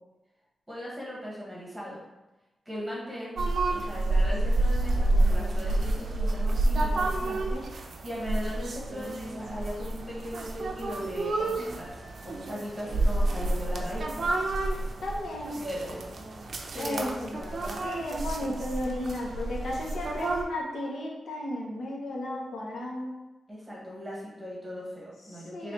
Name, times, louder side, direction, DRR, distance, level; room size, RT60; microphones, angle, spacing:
voice 1, 0.7-2.0 2.6-3.4 3.7-7.1 8.0-14.3 15.6-16.0 16.7-17.8 23.5-25.7, equal, 5° right, -6 dB, 1.3 m, -38 dB
sound 1, 3.4-20.4, right 2 dB, 55° right, 0.5 m, -29 dB
voice 2, 7.2-7.6 15.0-15.6 16.8-17.3 17.8-23.1 25.5-25.7, left 1 dB, 75° left, -2 dB, 0.8 m, -34 dB
3.1 x 3.0 x 4.4 m, 1.0 s
wide cardioid pair, 155°, 0 cm